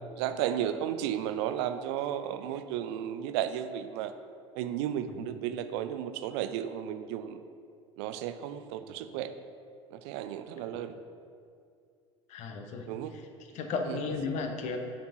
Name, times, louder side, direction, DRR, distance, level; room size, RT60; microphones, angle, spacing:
voice 1, 0.2-4.1 4.6-7.4 8.0-9.3 9.9-10.9 12.9-13.1 13.9-14.0, right 10 dB, 60° right, 10 dB, 0.5 m, -33 dB
voice 2, 12.3-13.3 13.5-14.8, left 4 dB, 50° left, 4 dB, 0.9 m, -35 dB
7.4 x 4.3 x 5.7 m, 2.3 s
figure-of-eight pair, 65°, 15 cm